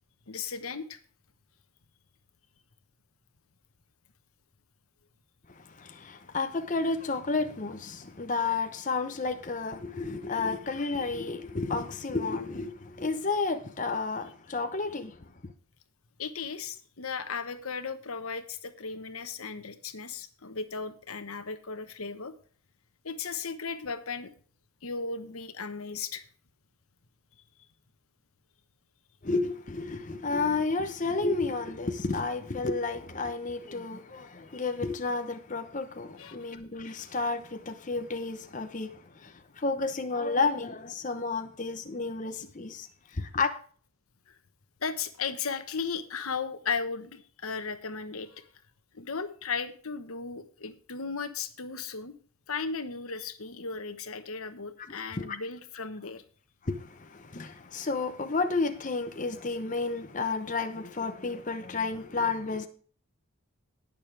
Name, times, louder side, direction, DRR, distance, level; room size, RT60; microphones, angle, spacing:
voice 1, 0.3-1.0 16.2-22.3 23.0-24.3 24.8-26.2 36.2-36.5 44.3-44.4 44.8-48.5 48.9-52.1 52.5-56.2, left 5 dB, 90° left, 1.2 m, -36 dB
voice 2, 5.6-15.5 29.2-43.5 54.9-55.4 56.6-62.7, left 3 dB, 35° left, 0.9 m, -31 dB
19.5 x 6.9 x 3.4 m
head